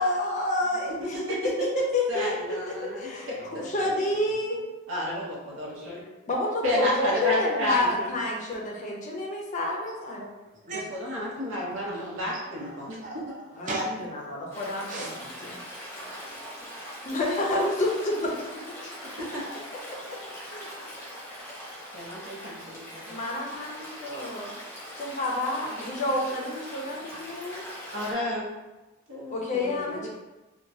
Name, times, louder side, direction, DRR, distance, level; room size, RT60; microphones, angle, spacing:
voice 1, 0.0-4.6 5.8-6.0 6.2-10.3 13.6-15.6 17.1-18.3 18.8-18.9 19.9-20.2 20.5-20.7 23.1-24.5 24.9-27.7 29.3-30.1, left 2 dB, 40° left, -1 dB, 0.5 m, -29 dB
voice 2, 1.0-1.5 2.1-3.7 4.9-6.0 6.6-8.1 10.9-13.0 19.2-19.4 21.9-23.2 27.9-28.4 29.1-30.1, equal, 70° right, -3 dB, 0.8 m, -31 dB
voice 3, 3.4-3.7 10.2-10.9 11.3-11.4 11.9-14.4 14.7-15.2, right 1 dB, 40° right, -3 dB, 0.6 m, -38 dB
Stream, 14.5-28.1, equal, 10° left, 0.8 m, -41 dB
2.9 x 2.2 x 2.6 m, 1.1 s
head